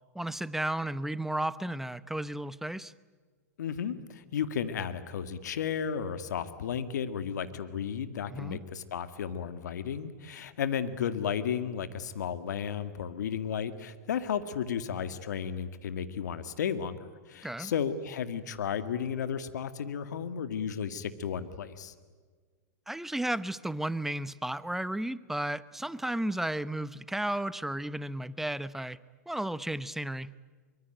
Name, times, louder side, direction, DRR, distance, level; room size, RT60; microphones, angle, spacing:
voice 1, 0.1-2.9 8.3-8.6 17.4-17.7 22.9-29.0 29.3-30.3, right 1 dB, 5° right, 16 dB, 0.8 m, -33 dB
voice 2, 3.6-21.9, left 8 dB, 75° left, 11 dB, 2.0 m, -33 dB
25.0 x 24.5 x 9.1 m, 1.5 s
hypercardioid pair, 115°, 9 cm